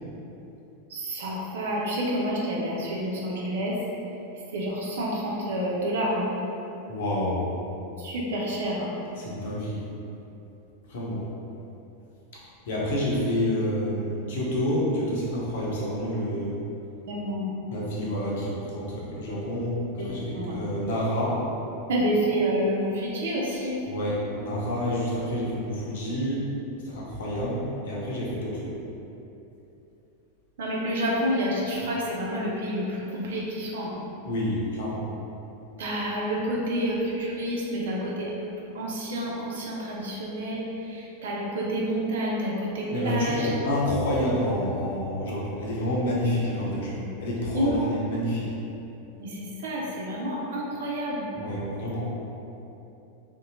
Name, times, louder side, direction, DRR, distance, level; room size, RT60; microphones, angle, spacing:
voice 1, 0.9-3.8 4.5-6.3 8.0-8.9 17.1-17.5 20.0-20.1 20.3-20.6 21.9-23.8 30.6-34.0 35.8-38.3 38.7-43.5 46.9-47.1 47.5-47.9 49.2-51.3, equal, 60° right, -4 dB, 0.6 m, -29 dB
voice 2, 6.9-7.5 9.2-9.8 10.9-11.2 12.3-16.6 17.7-21.4 23.5-26.5 26.9-28.7 34.2-35.1 42.9-48.5 51.3-52.1, left 1 dB, 55° left, -5 dB, 0.7 m, -28 dB
3.5 x 2.7 x 2.6 m, 2.9 s
figure-of-eight pair, 90°, 0 cm